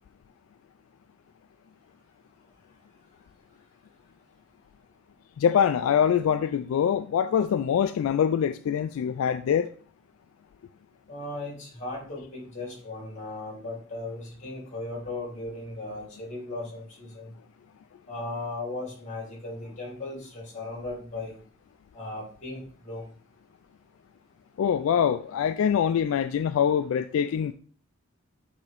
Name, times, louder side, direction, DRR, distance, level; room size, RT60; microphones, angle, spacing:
voice 1, 5.4-9.7 24.6-27.5, left 8 dB, 80° left, 0.3 m, -24 dB
voice 2, 11.1-17.3 18.1-21.4 21.9-23.1, left 2 dB, 35° left, 2.9 m, -37 dB
8.3 x 3.6 x 3.4 m
head